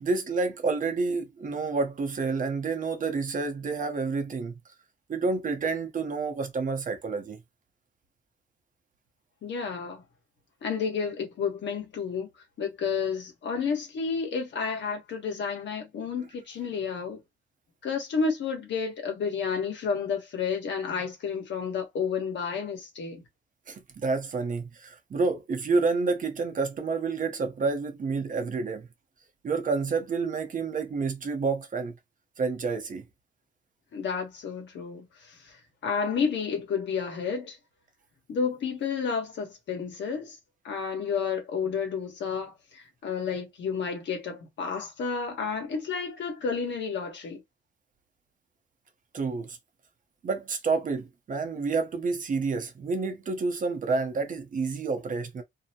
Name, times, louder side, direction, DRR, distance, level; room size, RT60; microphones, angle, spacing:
voice 1, 0.0-4.6 5.1-7.4 23.7-28.9 29.4-31.9 32.4-33.0 49.1-49.6 50.2-55.4, right 4 dB, 40° right, 0.8 m, -29 dB
voice 2, 9.4-10.0 10.6-12.3 12.6-17.2 17.8-23.2 33.9-35.6 35.8-37.6 38.3-40.4 40.6-47.4, left 5 dB, 65° left, 1.2 m, -31 dB
2.7 x 2.0 x 2.8 m
cardioid pair, 90°, 20 cm